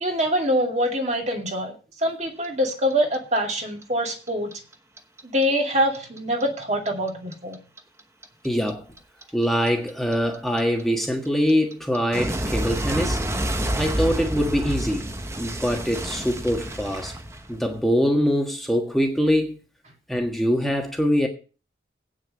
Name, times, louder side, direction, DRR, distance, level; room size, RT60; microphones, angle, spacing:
voice 1, 0.0-1.7 2.0-4.5 5.2-7.6, equal, 40° right, 2.3 m, -24 dB
Clock, 2.4-5.4 5.7-8.7 9.0-17.8, right 1 dB, 15° right, 0.9 m, -29 dB
voice 2, 8.4-8.8 9.3-13.2 13.8-15.1 15.3-17.1 17.5-19.6 20.1-21.3, equal, ahead, 1.5 m, -23 dB
9.0 x 6.4 x 7.6 m
head